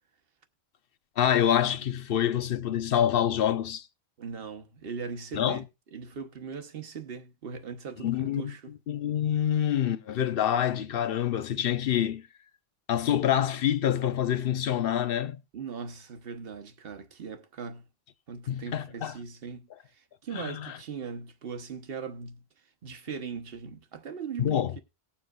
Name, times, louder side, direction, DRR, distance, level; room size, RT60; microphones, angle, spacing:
voice 1, 1.2-3.9 5.3-5.6 8.0-8.4 8.9-12.3 12.9-15.4 18.5-19.1 20.3-20.7 24.4-24.7, left 10 dB, 65° left, 0.8 m, -26 dB
voice 2, 4.2-5.6 5.9-8.7 15.5-17.8 18.3-19.6 19.9-22.4 22.8-24.8, right 6 dB, 60° right, 1.2 m, -39 dB
19.0 x 7.2 x 2.3 m
omnidirectional pair, 1.1 m